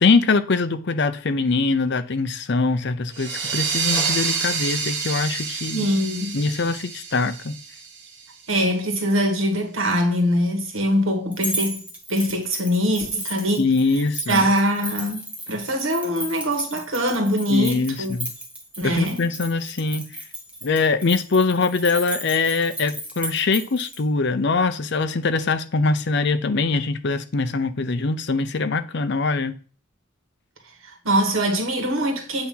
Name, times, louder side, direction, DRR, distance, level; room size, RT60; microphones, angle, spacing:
voice 1, 0.0-5.9 6.3-7.6 13.6-14.5 17.5-18.3 18.8-20.1 20.6-29.5, left 3 dB, 55° left, 0.6 m, -22 dB
sound 1, 3.1-8.4, right 5 dB, 55° right, 1.3 m, -28 dB
voice 2, 5.7-6.4 8.5-11.8 12.1-13.6 14.3-15.2 15.5-18.1 18.8-19.2 30.8-32.5, equal, 70° right, 1.5 m, -22 dB
sound 2, 11.3-24.0, right 1 dB, 5° right, 0.9 m, -34 dB
8.1 x 2.9 x 5.5 m
head